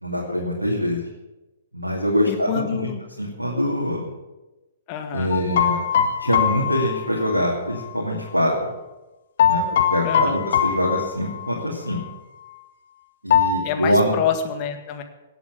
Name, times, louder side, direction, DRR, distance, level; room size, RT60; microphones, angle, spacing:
voice 1, 0.0-1.1 1.7-2.9 3.2-4.1 5.1-5.8 6.2-8.7 9.5-12.0 13.2-14.2, equal, 85° right, -2 dB, 2.6 m, -24 dB
voice 2, 2.3-3.0 4.9-5.4 10.0-10.4 13.6-15.0, left 8 dB, 35° left, 6 dB, 1.8 m, -27 dB
sound 1, 5.3-7.9 9.4-11.7 11.9-12.1 13.3-13.6, left 8 dB, 55° left, 1.9 m, -22 dB
18.5 x 8.2 x 8.3 m, 1.1 s
figure-of-eight pair, 115°, 0 cm